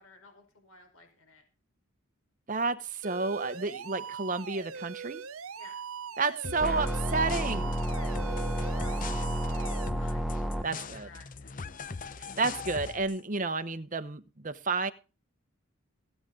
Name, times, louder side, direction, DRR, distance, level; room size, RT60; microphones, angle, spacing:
voice 1, 0.0-1.4 5.6-5.7 7.9-10.4 10.7-11.6, left 3 dB, 80° left, 4 dB, 4.9 m, -54 dB
voice 2, 2.5-5.2 6.2-7.7 10.6-11.1 12.2-14.9, right 3 dB, 35° right, 11 dB, 1.0 m, -31 dB
sound 1, 3.0-9.9, right 7 dB, 80° right, 0.8 m, -41 dB
sound 2, 6.4-13.2, left 5 dB, 40° left, 0.7 m, -42 dB
sound 3, 6.6-10.6, equal, ahead, 1.0 m, -31 dB
20.5 x 9.3 x 3.8 m, 0.34 s
head